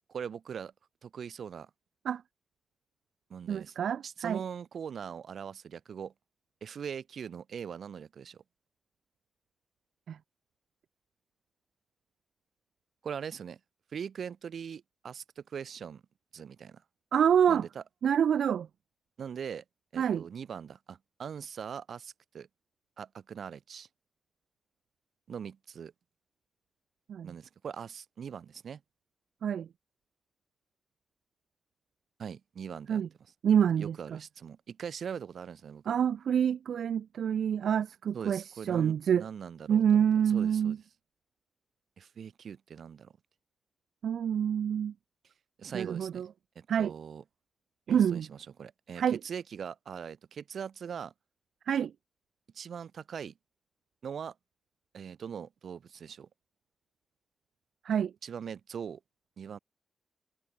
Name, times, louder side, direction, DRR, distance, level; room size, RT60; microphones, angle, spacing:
voice 1, 0.1-0.7 1.0-1.7 3.3-3.7 4.0-6.1 6.6-8.4 13.0-13.6 13.9-16.0 16.3-16.8 17.5-17.8 19.2-19.6 19.9-22.5 23.0-23.9 25.3-25.9 27.2-28.8 32.2-33.0 33.8-35.8 38.1-40.8 42.0-43.1 45.6-46.2 46.5-47.2 47.9-51.1 52.5-53.3 54.0-54.3 54.9-56.3 58.2-59.0 59.4-59.6, right 7 dB, 70° right, 2.6 m, -41 dB
voice 2, 3.5-4.4 10.1-10.2 17.1-17.7 18.0-18.7 20.0-20.3 27.1-27.3 29.4-29.7 32.9-33.1 33.4-34.2 35.9-39.3 39.7-40.8 44.0-44.9 45.7-46.3 46.7-46.9 47.9-48.3 49.0-49.2 51.7-51.9 57.9-58.1, right 8 dB, 90° right, 0.3 m, -27 dB
wide cardioid pair, 125°, 0 cm